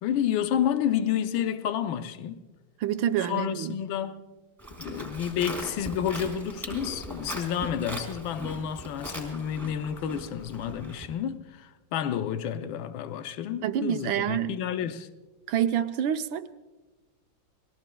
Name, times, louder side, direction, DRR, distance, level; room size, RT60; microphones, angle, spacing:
voice 1, 0.0-2.4 3.2-4.3 4.8-15.1, left 9 dB, 80° left, 1.5 m, -30 dB
voice 2, 2.8-3.8 13.6-14.5 15.5-16.5, right 10 dB, 85° right, 1.5 m, -27 dB
Livestock farm animals working animals, 4.6-11.1, right 1 dB, ahead, 4.3 m, -39 dB
29.5 x 21.0 x 2.3 m
omnidirectional pair, 2.1 m